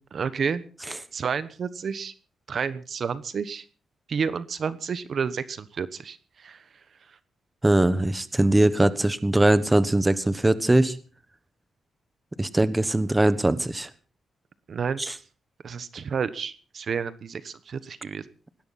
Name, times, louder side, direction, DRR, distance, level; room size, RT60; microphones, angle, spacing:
voice 1, 0.1-0.6 1.1-2.1 2.5-3.6 4.1-6.2 6.4-6.6 14.7-15.0 15.6-18.2, right 6 dB, 55° right, 14 dB, 1.1 m, -30 dB
voice 2, 7.6-11.0 12.4-13.9 15.0-15.1, right 1 dB, 15° right, 14 dB, 1.2 m, -21 dB
19.5 x 16.5 x 4.2 m, 0.39 s
cardioid pair, 100°, 0 cm